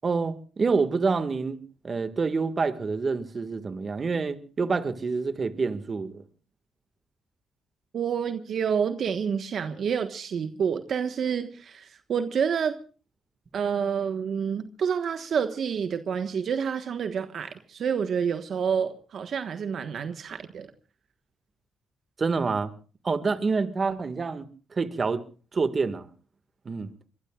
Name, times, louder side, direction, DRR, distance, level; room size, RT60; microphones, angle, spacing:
voice 1, 0.0-1.6 1.8-6.2 22.2-22.7 23.0-24.5 24.7-25.2 25.5-26.1 26.7-26.9, right 4 dB, 35° right, 1.9 m, -27 dB
voice 2, 7.9-12.8 13.5-20.7, right 7 dB, 60° right, 1.4 m, -28 dB
25.5 x 23.0 x 2.4 m
cardioid pair, 90°, 0 cm